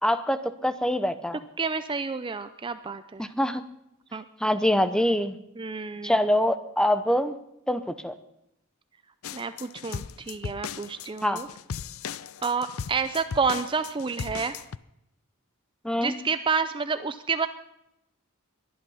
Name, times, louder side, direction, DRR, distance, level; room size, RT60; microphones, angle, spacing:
voice 1, 0.0-1.4 3.2-3.6 4.4-5.4 6.0-7.3 7.7-8.1 11.2-11.4 15.8-16.2, left 1 dB, 5° left, 12 dB, 0.8 m, -24 dB
voice 2, 1.6-3.3 4.1-4.2 5.6-6.2 9.3-11.5 12.4-14.6 16.0-17.5, right 5 dB, 25° right, 11 dB, 0.5 m, -29 dB
sound 1, 9.2-14.8, left 7 dB, 70° left, 0.5 m, -37 dB
21.5 x 11.5 x 5.6 m, 0.82 s
head